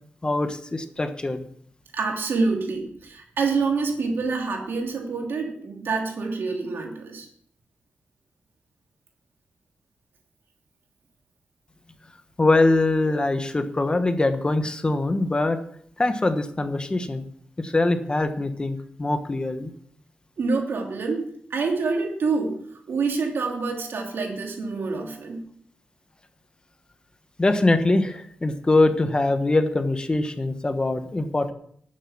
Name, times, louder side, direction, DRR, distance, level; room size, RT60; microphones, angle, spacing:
voice 1, 0.2-1.4 12.4-15.6 16.0-17.3 17.6-19.7 27.4-31.5, left 2 dB, 25° left, 9 dB, 1.2 m, -23 dB
voice 2, 1.9-7.3 20.4-21.2 21.5-22.6 22.9-25.4, right 4 dB, 70° right, 1 dB, 3.1 m, -26 dB
11.0 x 9.6 x 5.9 m, 0.63 s
wide cardioid pair, 105°, 4 cm